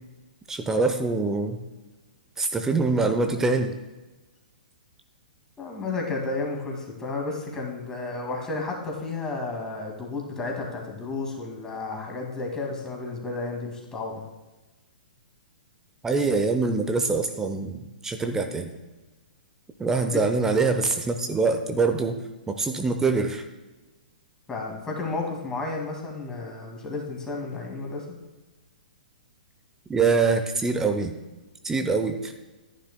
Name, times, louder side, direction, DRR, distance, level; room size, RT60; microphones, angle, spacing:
voice 1, 0.5-1.6 2.4-3.7 16.0-18.7 19.8-22.2 22.5-23.4 29.9-31.2 31.6-32.3, right 4 dB, 10° right, 6 dB, 0.6 m, -24 dB
voice 2, 5.6-14.2 20.1-20.2 24.5-28.1, left 3 dB, 10° left, 0 dB, 2.0 m, -32 dB
14.5 x 9.9 x 2.2 m, 1.1 s
figure-of-eight pair, 115°, 5 cm